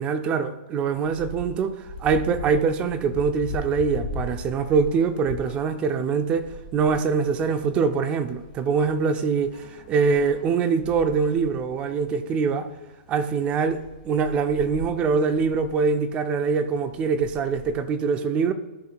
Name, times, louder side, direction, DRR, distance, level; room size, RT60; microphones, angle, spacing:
voice 1, 0.0-12.7 13.1-18.5, right 5 dB, 20° right, 0.5 m, -24 dB
sound 1, 0.9-17.7, left 2 dB, 45° left, 1.4 m, -40 dB
14.0 x 5.7 x 2.3 m
hypercardioid pair, 160°, 6 cm